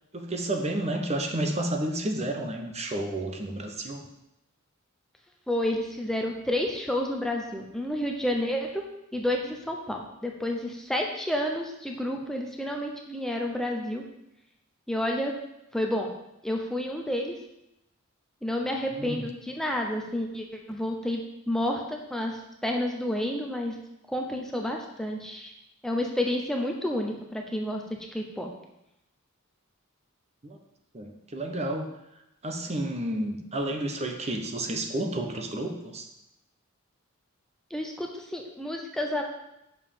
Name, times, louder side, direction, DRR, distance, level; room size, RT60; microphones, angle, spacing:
voice 1, 0.1-4.0 18.7-19.3 30.4-30.6 30.9-31.9 32.4-36.1, right 1 dB, 30° right, 4 dB, 0.9 m, -31 dB
voice 2, 5.5-8.8 9.1-14.0 14.9-15.3 15.7-16.1 16.4-17.3 18.4-21.2 21.5-23.8 24.1-25.5 25.8-27.8 28.1-28.5 37.7-39.2, left 1 dB, ahead, 1 dB, 0.8 m, -30 dB
6.8 x 5.6 x 7.1 m, 0.86 s
head